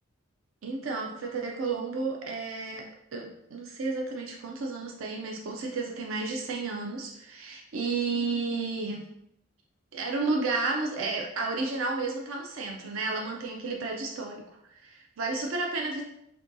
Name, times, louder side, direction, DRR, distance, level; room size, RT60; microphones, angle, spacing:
voice 1, 0.6-2.9 3.1-9.1 9.9-14.4 14.7-16.0, right 3 dB, 70° right, 0 dB, 0.5 m, -32 dB
6.2 x 2.3 x 2.6 m, 0.77 s
head